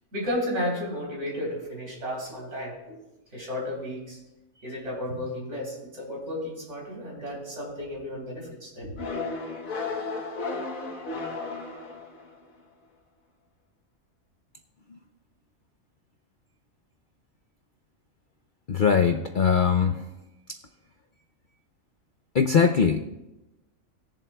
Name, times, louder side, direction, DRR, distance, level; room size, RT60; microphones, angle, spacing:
voice 1, 0.1-3.0 3.3-4.2 4.6-9.0, left 1 dB, 60° right, -4 dB, 4.0 m, -33 dB
sound 1, 9.0-12.5, left 3 dB, 90° left, 1.7 m, -34 dB
voice 2, 18.7-20.1 22.3-23.0, left 6 dB, 55° left, 5 dB, 0.6 m, -21 dB
20.0 x 7.3 x 2.3 m, 0.98 s
omnidirectional pair, 1.4 m